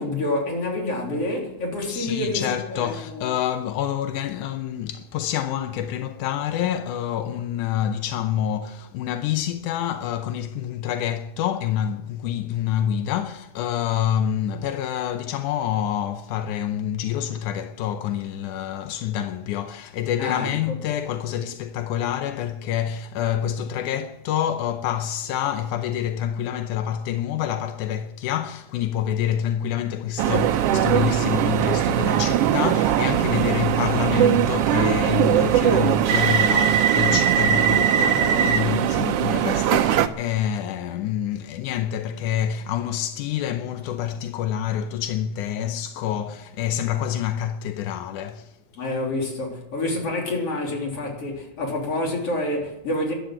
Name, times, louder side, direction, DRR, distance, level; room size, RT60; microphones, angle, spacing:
voice 1, 0.0-3.3 20.2-20.8 48.8-53.1, left 2 dB, 50° left, 4.6 m, -28 dB
voice 2, 1.9-48.6, left 10 dB, 85° left, 2.3 m, -27 dB
sound 1, 30.2-40.1, right 10 dB, 75° right, 1.4 m, -20 dB
13.0 x 11.5 x 7.8 m
omnidirectional pair, 3.5 m